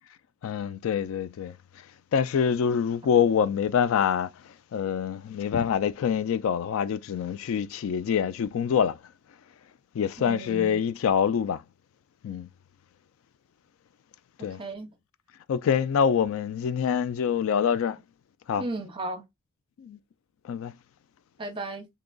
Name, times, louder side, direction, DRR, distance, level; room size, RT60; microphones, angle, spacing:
voice 1, 0.4-1.5 2.1-4.3 4.7-9.0 10.0-11.6 12.2-12.5 14.4-14.6 15.5-18.0 18.5-18.6 19.8-20.0 20.4-20.7, left 7 dB, 65° left, 0.3 m, -25 dB
voice 2, 10.2-10.8 14.4-14.9 18.6-19.2 21.4-21.9, right 2 dB, 25° right, 0.7 m, -35 dB
3.7 x 2.8 x 2.3 m
head